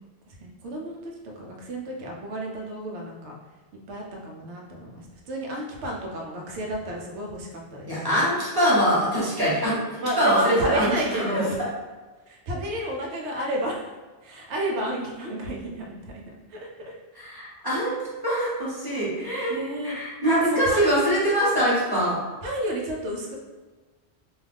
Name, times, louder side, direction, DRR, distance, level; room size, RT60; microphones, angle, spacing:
voice 1, 0.3-3.3 3.9-8.2 10.0-11.6 12.3-14.0 14.2-16.2 16.5-16.9 19.5-20.0 20.4-20.8 22.4-23.4, right 1 dB, 80° right, -1 dB, 0.9 m, -31 dB
voice 2, 7.9-10.9 11.2-11.4 17.1-17.9 18.2-19.5 19.8-22.2, equal, 20° right, -8 dB, 0.9 m, -23 dB
2.5 x 2.3 x 3.3 m, 1.3 s
omnidirectional pair, 1.1 m